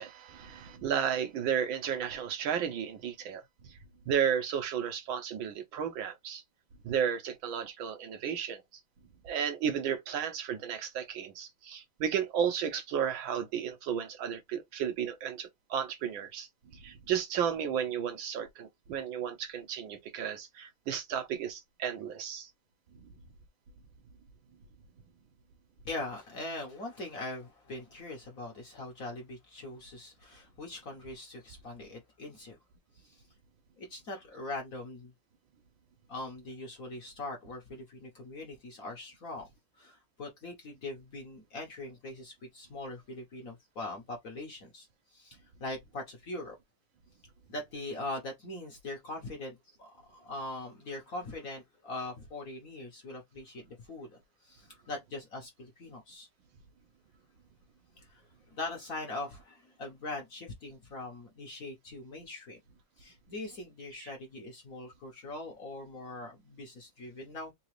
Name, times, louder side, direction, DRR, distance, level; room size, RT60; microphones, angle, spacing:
voice 1, 0.0-3.4 4.1-6.4 6.8-8.6 9.2-16.5 16.8-22.5, right 8 dB, 75° right, 1.5 m, -33 dB
voice 2, 25.8-32.6 32.9-33.2 33.8-35.1 36.1-39.5 39.8-46.6 47.5-56.3 58.0-62.6 63.0-67.5, left 2 dB, 50° left, 1.2 m, -42 dB
3.9 x 2.9 x 3.1 m
omnidirectional pair, 2.3 m